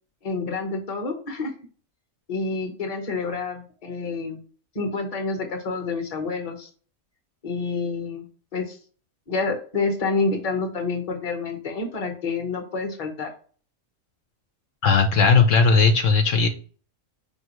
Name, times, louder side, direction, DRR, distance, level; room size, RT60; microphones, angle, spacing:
voice 1, 0.2-1.5 2.3-4.4 4.7-6.7 7.4-8.3 8.5-8.8 9.3-13.3, left 4 dB, 30° left, 4 dB, 0.9 m, -28 dB
voice 2, 14.8-16.5, left 4 dB, 70° left, 5 dB, 1.0 m, -17 dB
4.9 x 2.8 x 3.0 m, 0.39 s
omnidirectional pair, 1.4 m